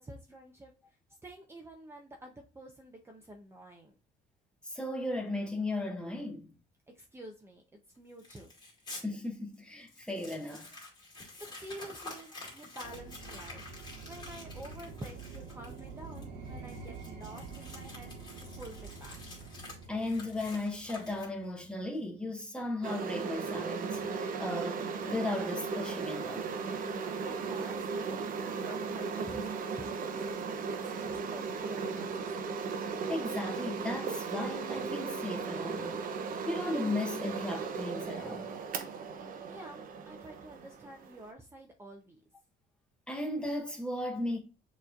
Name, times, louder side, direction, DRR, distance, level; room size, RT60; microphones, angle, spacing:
voice 1, 0.0-4.0 6.9-8.5 11.4-18.1 18.6-19.2 27.2-32.4 39.5-42.2, right 1 dB, 15° right, 0.7 m, -49 dB
voice 2, 4.7-6.5 9.0-10.7 19.9-26.5 33.1-36.1 36.5-38.5 43.1-44.4, left 2 dB, 5° left, 1.1 m, -36 dB
Crumpling crinkling, 8.2-9.0 9.5-9.6 9.9-21.6, left 2 dB, 25° left, 2.3 m, -49 dB
sound 1, 12.8-21.9, right 4 dB, 75° right, 1.3 m, -47 dB
sound 2, 22.8-41.3, right 5 dB, 55° right, 0.8 m, -36 dB
6.6 x 3.1 x 2.4 m
cardioid pair, 110°, 17 cm